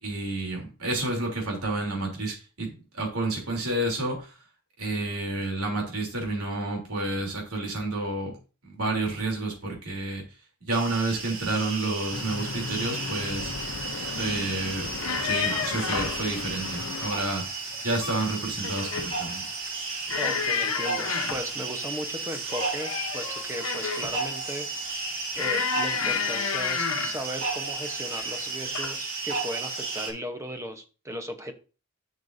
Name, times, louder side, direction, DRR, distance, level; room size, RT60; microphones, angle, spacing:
voice 1, 0.0-4.3 4.8-8.3 8.6-10.2 10.7-13.5 13.9-17.4 17.8-19.4, right 2 dB, 90° right, 0 dB, 3.2 m, -30 dB
sound 1, 10.7-30.1, right 3 dB, 65° right, 3.2 m, -33 dB
Traffic noise roadway noise, 12.1-17.1, left 4 dB, 60° left, 0.6 m, -37 dB
sound 2, 15.0-16.2 17.7-18.3 18.6-19.2 20.1-21.5 22.5-24.2 25.4-27.2 28.1-28.4 28.7-29.0, left 6 dB, 80° left, 1.0 m, -30 dB
voice 2, 20.2-25.0 25.4-31.5, equal, 15° right, 7 dB, 0.9 m, -36 dB
11.5 x 6.5 x 2.7 m, 0.35 s
head